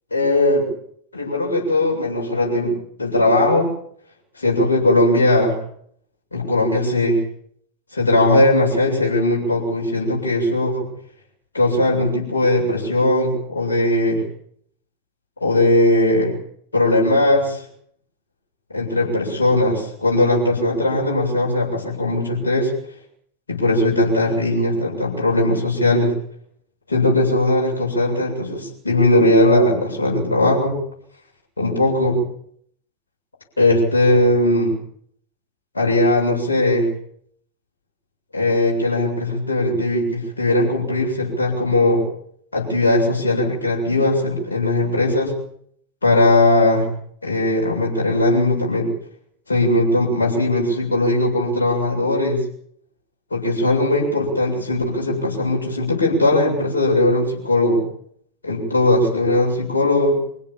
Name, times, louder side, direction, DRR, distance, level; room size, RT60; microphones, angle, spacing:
voice 1, 0.1-0.7 1.1-3.7 4.4-5.6 6.3-7.2 7.9-10.9 11.5-14.2 15.4-16.4 16.7-17.6 18.7-22.7 23.5-26.1 26.9-30.8 31.6-32.2 33.6-34.7 35.7-36.9 38.3-42.0 42.5-45.4 46.0-46.9 47.2-48.9 49.5-52.4 53.3-57.8 58.4-60.2, left 1 dB, 75° left, -2 dB, 7.5 m, -19 dB
24.5 x 16.5 x 7.3 m, 0.65 s
figure-of-eight pair, 90°, 0 cm